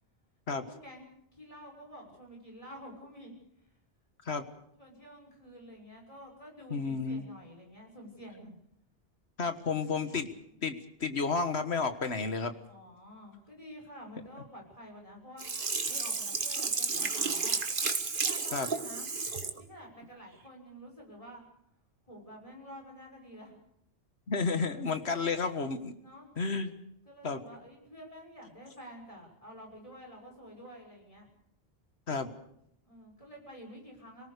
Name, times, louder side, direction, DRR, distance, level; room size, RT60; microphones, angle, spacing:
voice 1, 0.5-3.3 4.8-8.5 9.9-10.2 12.7-15.5 15.8-17.6 18.2-19.1 19.5-21.4 22.0-23.6 25.0-25.3 26.0-26.3 27.0-31.3 32.8-34.3, equal, 30° left, 0 dB, 6.4 m, -49 dB
voice 2, 6.7-7.2 9.4-10.3 10.6-12.5 18.5-18.7 24.3-26.0 26.4-26.7 27.2-27.4 32.1-32.3, left 4 dB, 75° left, 8 dB, 1.9 m, -31 dB
Sink (filling or washing), 15.4-19.6 20.0-20.1, right 4 dB, 55° right, 1.5 m, -32 dB
25.5 x 18.5 x 6.7 m, 0.74 s
omnidirectional pair, 1.1 m